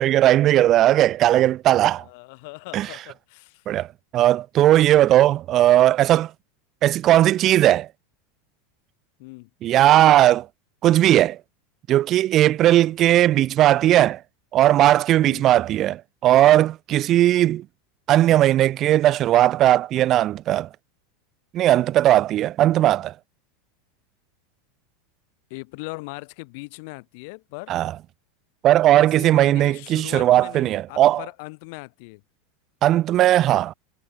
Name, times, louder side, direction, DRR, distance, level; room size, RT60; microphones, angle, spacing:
voice 1, 0.0-2.0 2.7-2.9 3.7-3.9 4.1-6.3 6.8-7.9 9.6-10.5 10.8-11.4 11.9-14.2 14.5-17.6 18.1-20.7 21.5-23.1 27.7-27.9 28.6-31.2 32.8-33.7, right 13 dB, 35° right, 0.4 m, -17 dB
voice 2, 1.9-3.6 9.2-9.5 12.6-13.0 15.2-15.5 25.5-27.8 29.0-32.2, left 29 dB, 60° left, 3.6 m, -40 dB
supercardioid pair, 150°, 0 cm